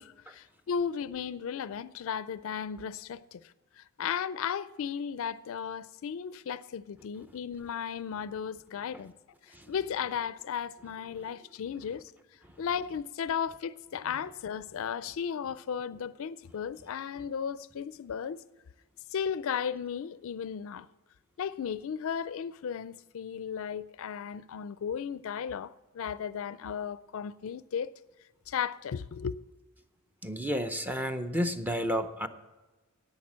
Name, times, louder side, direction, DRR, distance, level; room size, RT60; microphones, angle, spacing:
voice 1, 0.0-3.4 3.8-9.1 9.7-12.0 12.6-18.4 19.1-20.9 21.4-27.9 28.5-29.4, left 7 dB, 70° left, 0.4 m, -35 dB
voice 2, 30.2-32.3, equal, 10° right, 0.6 m, -32 dB
10.5 x 8.7 x 7.3 m
head